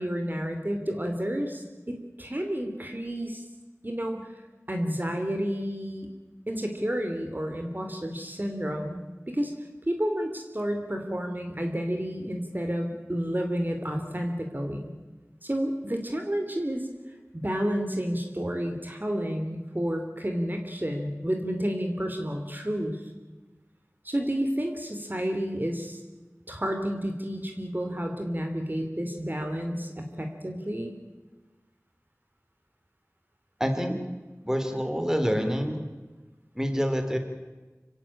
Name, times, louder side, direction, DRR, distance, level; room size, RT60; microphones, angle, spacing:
voice 1, 0.0-3.4 3.8-4.3 4.7-6.1 6.5-9.0 9.3-9.5 9.9-14.9 15.4-16.8 17.3-23.0 24.0-26.0 26.5-30.9, equal, 35° right, 4 dB, 2.8 m, -30 dB
voice 2, 33.6-33.9 34.4-35.8 36.5-37.2, equal, 10° right, 6 dB, 3.2 m, -26 dB
26.5 x 16.0 x 8.8 m, 1.2 s
wide cardioid pair, 40°, 5 cm